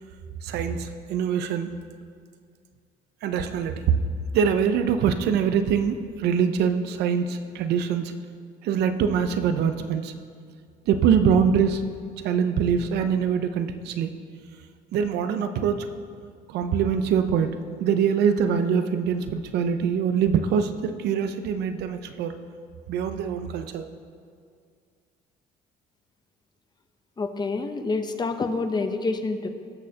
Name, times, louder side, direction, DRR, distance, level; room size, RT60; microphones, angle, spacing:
voice 1, 0.4-1.7 3.2-4.0 4.3-8.1 8.6-10.1 10.9-11.8 12.2-14.1 14.9-15.9 16.5-22.3 22.9-23.9, right 7 dB, 75° right, 9 dB, 0.7 m, -24 dB
voice 2, 27.2-29.5, left 3 dB, 25° left, 7 dB, 0.7 m, -27 dB
19.0 x 6.3 x 2.9 m, 2.2 s
cardioid pair, 110°, 17 cm